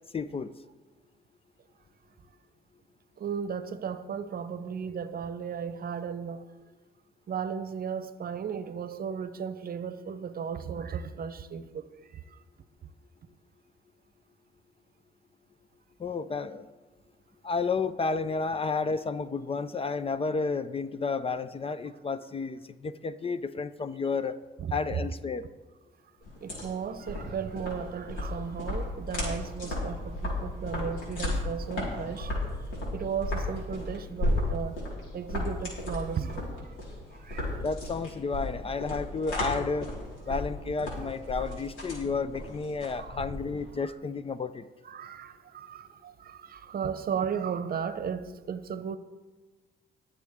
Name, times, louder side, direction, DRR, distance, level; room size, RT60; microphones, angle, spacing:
voice 1, 0.1-0.5 16.0-16.6 17.4-24.4 24.7-25.4 37.6-39.9 40.3-44.7, left 4 dB, 30° left, 0.5 m, -31 dB
voice 2, 3.2-6.5 7.3-12.4 24.6-25.0 26.4-32.4 32.9-34.8 35.1-36.8 37.2-37.5 41.4-41.5 43.0-43.2 44.8-49.0, right 7 dB, 50° right, 0.8 m, -35 dB
Outdoor Walking With Leaves and Wind, 26.2-43.7, left 1 dB, 80° left, 4.3 m, -34 dB
19.5 x 7.2 x 3.6 m
cardioid pair, 90°, 20 cm